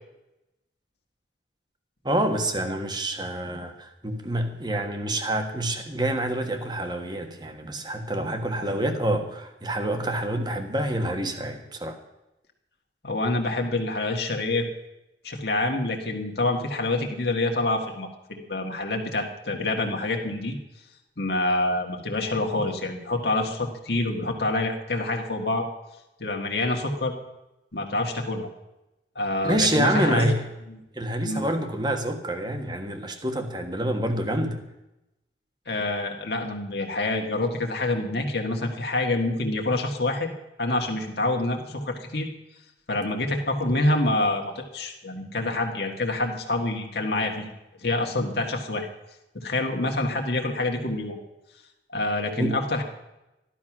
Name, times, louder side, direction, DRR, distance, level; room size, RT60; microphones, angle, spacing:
voice 1, 2.0-12.0 29.4-30.4 30.9-34.6 52.4-52.6, right 1 dB, 25° right, 6 dB, 1.4 m, -27 dB
voice 2, 13.0-14.7 15.2-20.6 21.2-25.6 26.2-27.1 27.7-28.5 29.1-30.3 30.7-30.8 31.2-31.4 35.6-40.3 40.6-42.3 42.9-47.5 47.8-48.9 49.3-51.2 51.9-52.8, left 2 dB, 60° left, 2 dB, 1.7 m, -27 dB
14.0 x 12.0 x 6.1 m, 0.93 s
head